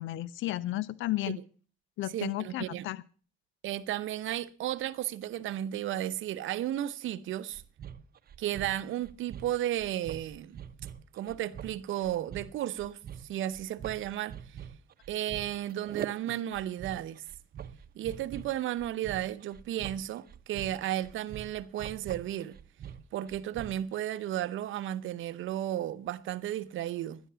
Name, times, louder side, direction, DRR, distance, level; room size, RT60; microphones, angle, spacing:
voice 1, 0.0-1.4 2.0-3.0, left 16 dB, 80° left, 0.5 m, -33 dB
voice 2, 2.1-2.9 3.6-7.6 8.4-10.6 11.1-13.0 13.2-14.6 15.1-17.2 17.9-22.5 23.1-27.2, right 12 dB, 80° right, 0.9 m, -34 dB
sound 1, 7.5-23.9, right 9 dB, 50° right, 0.8 m, -45 dB
12.0 x 10.5 x 6.8 m
cardioid pair, 90°, 20 cm